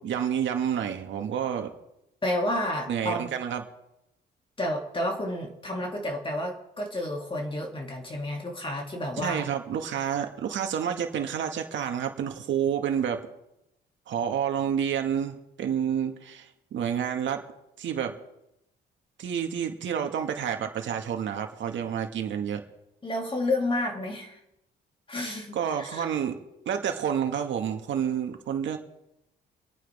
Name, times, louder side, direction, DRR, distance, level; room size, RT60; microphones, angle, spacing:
voice 1, 0.0-1.7 2.9-3.6 9.2-13.2 14.1-17.4 17.8-18.1 19.2-22.6 25.2-26.4 26.7-28.8, right 8 dB, 70° right, 4 dB, 2.0 m, -29 dB
voice 2, 2.2-3.3 4.6-9.5 23.0-24.4 25.1-26.1, left 1 dB, 25° left, 0 dB, 2.8 m, -30 dB
26.0 x 9.4 x 3.6 m, 0.85 s
cardioid pair, 90°, 20 cm